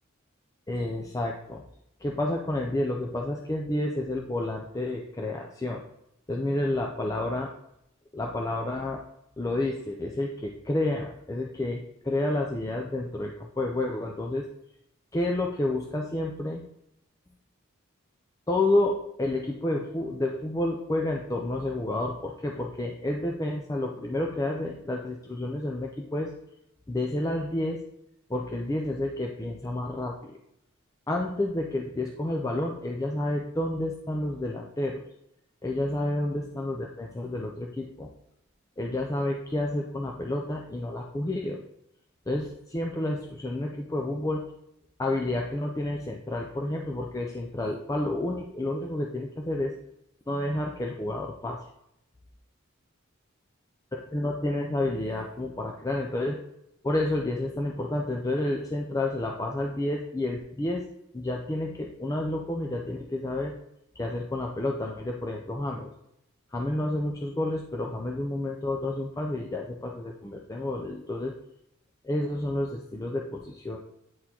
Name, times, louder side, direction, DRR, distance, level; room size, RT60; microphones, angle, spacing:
voice 1, 0.7-1.6 2.0-5.8 6.3-7.5 8.1-9.0 9.4-14.5 15.1-16.6 18.5-26.3 26.9-27.8 28.3-30.4 31.1-35.0 35.6-38.1 38.8-41.6 42.3-44.4 45.0-49.7 50.3-51.7 54.1-56.4 56.8-60.8 61.1-63.5 64.0-65.9 66.5-71.3 72.0-73.8, left 1 dB, 15° left, 0 dB, 0.4 m, -30 dB
9.1 x 4.2 x 2.9 m, 0.78 s
head